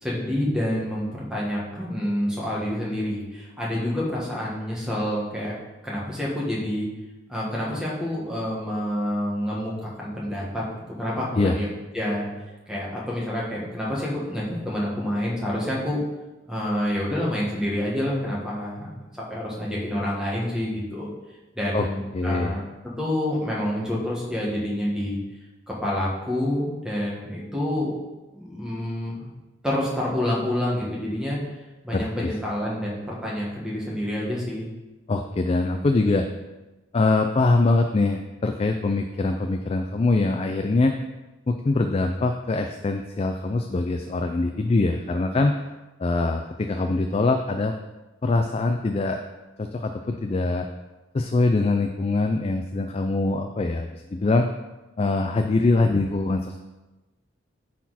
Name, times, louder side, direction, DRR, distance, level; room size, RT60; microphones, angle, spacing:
voice 1, 0.0-5.5 5.8-6.9 7.3-10.6 11.0-12.3 12.7-16.0 16.5-18.9 19.3-21.1 21.5-22.6 23.0-25.2 25.7-27.9 28.3-29.3 29.6-31.4 31.8-34.7, left 1 dB, 5° right, -5 dB, 1.8 m, -28 dB
voice 2, 22.1-22.6 31.9-32.3 35.1-36.3 36.9-40.9 41.5-45.6 46.0-47.7 48.2-49.2 49.6-50.7 51.1-54.5 55.0-56.6, left 3 dB, 30° left, 5 dB, 0.3 m, -23 dB
10.0 x 4.2 x 4.2 m, 1.1 s
head